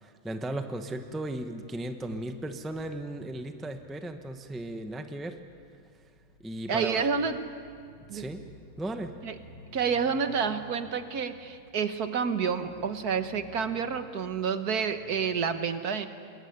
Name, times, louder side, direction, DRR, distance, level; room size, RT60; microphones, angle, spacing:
voice 1, 0.0-5.4 6.4-7.0 8.1-8.4 8.8-9.1, right 1 dB, ahead, 6 dB, 0.9 m, -36 dB
sound 1, 2.5-15.5, left 1 dB, 55° left, 3.1 m, -54 dB
voice 2, 6.7-7.4 8.1-8.3 9.2-9.4 9.7-16.1, right 6 dB, 65° right, 9 dB, 1.6 m, -29 dB
26.5 x 21.0 x 9.7 m, 2.1 s
omnidirectional pair, 1.9 m